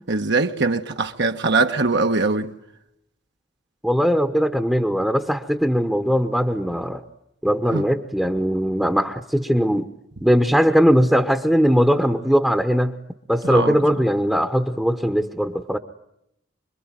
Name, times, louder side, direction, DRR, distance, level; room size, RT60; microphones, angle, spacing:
voice 1, 0.1-2.5 7.7-7.8 13.4-13.8, right 3 dB, 65° right, 1.3 m, -21 dB
voice 2, 3.8-7.0 7.4-9.9 10.2-12.9 13.3-15.8, equal, 5° right, 1.0 m, -20 dB
26.0 x 23.0 x 9.2 m
head